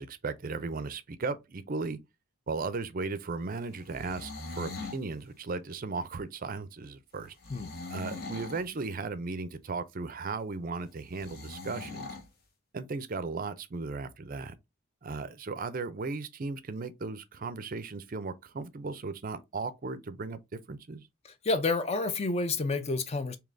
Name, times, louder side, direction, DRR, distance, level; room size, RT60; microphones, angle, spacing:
voice 1, 0.0-2.0 2.5-4.3 4.6-7.3 7.9-12.2 12.7-14.5 15.0-21.0, right 4 dB, 40° right, 0.5 m, -36 dB
sound 1, 3.8-5.0 7.4-8.7 11.2-12.3, left 3 dB, 45° left, 0.9 m, -41 dB
voice 2, 21.2-23.4, left 3 dB, 30° left, 0.5 m, -29 dB
3.8 x 2.9 x 3.2 m
head